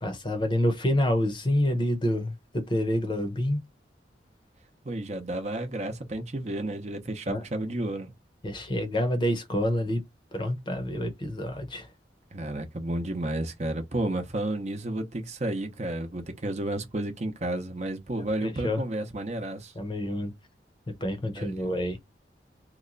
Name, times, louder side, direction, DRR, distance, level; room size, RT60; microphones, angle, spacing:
voice 1, 0.0-3.6 7.3-7.4 8.4-10.0 10.3-11.9 18.4-18.8 19.7-20.3 21.0-22.0, left 1 dB, 25° left, 0.7 m, -27 dB
voice 2, 4.8-8.1 12.3-19.7 21.4-21.7, right 1 dB, 40° right, 0.7 m, -32 dB
2.9 x 2.2 x 3.8 m
head